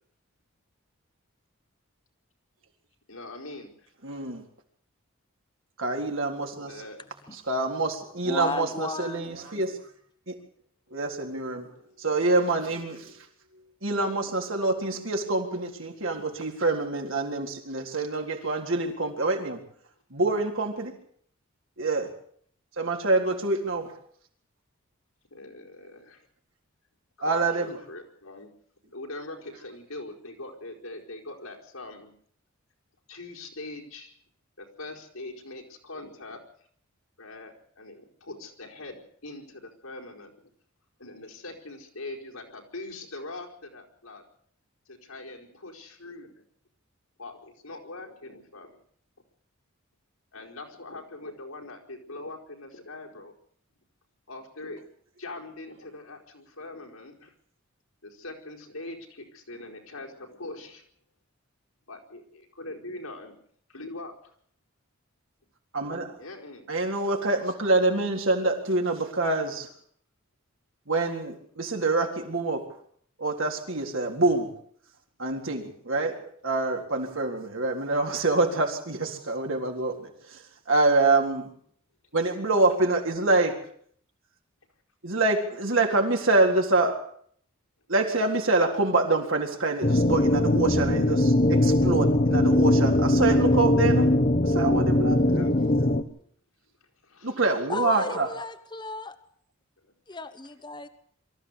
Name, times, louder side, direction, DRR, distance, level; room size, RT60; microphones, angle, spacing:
voice 1, 3.1-3.9 6.6-7.0 11.0-12.1 25.3-26.3 27.2-28.5 28.9-32.1 33.1-34.1 34.6-36.4 37.2-40.4 41.0-44.2 44.9-46.3 47.2-48.7 50.3-53.3 54.3-54.9 55.2-57.3 58.0-60.8 61.9-63.4 63.7-64.3 66.2-66.7 95.1-95.7 97.0-97.4 97.9-98.2 99.8-100.2, left 2 dB, 85° left, 1 dB, 4.9 m, -42 dB
voice 2, 4.0-4.4 5.8-6.7 7.3-9.8 10.3-10.4 10.9-11.7 12.0-13.2 13.8-19.6 20.1-20.9 21.8-22.1 22.8-23.9 27.2-27.8 65.7-66.2 66.7-69.7 70.9-72.7 73.2-74.5 75.2-76.2 76.4-81.5 82.1-83.6 85.0-87.0 87.9-94.1 94.4-95.5 97.2-98.3, right 3 dB, 65° right, 2 dB, 3.9 m, -26 dB
voice 3, 8.2-9.4 97.7-99.2 100.1-100.9, left 3 dB, 20° left, 11 dB, 1.2 m, -34 dB
sound 1, 89.8-96.0, left 1 dB, 40° left, 1.3 m, -21 dB
24.0 x 14.5 x 8.2 m, 0.63 s
head